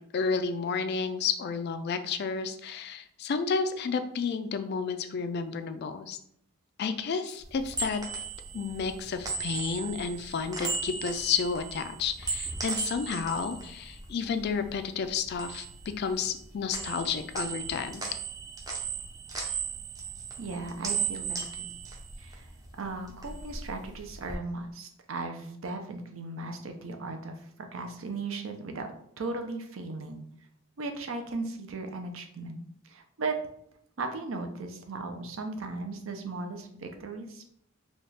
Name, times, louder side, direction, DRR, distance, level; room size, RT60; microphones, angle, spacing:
voice 1, 0.1-6.2 6.8-8.0 8.5-15.7 16.0-18.0, left 5 dB, 50° left, 9 dB, 0.3 m, -31 dB
sound 1, 7.4-14.7 15.0-16.4 16.7-22.7 23.0-24.3, right 5 dB, 15° right, 0.6 m, -36 dB
voice 2, 20.4-21.7 22.2-22.5 22.8-27.4 27.7-28.9 29.2-30.2 30.8-33.4 34.0-37.5, right 3 dB, 65° right, 5 dB, 0.5 m, -37 dB
4.2 x 2.3 x 3.2 m, 0.71 s
head